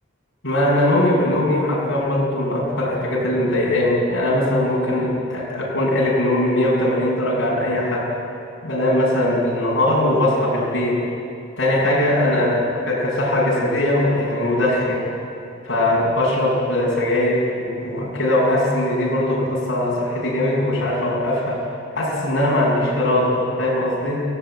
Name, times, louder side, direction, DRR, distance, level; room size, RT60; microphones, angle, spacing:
voice 1, 0.4-8.1 8.6-11.0 11.6-15.0 15.6-21.6 22.0-24.2, left 1 dB, 60° left, -5 dB, 7.2 m, -20 dB
30.0 x 17.0 x 9.2 m, 2.6 s
head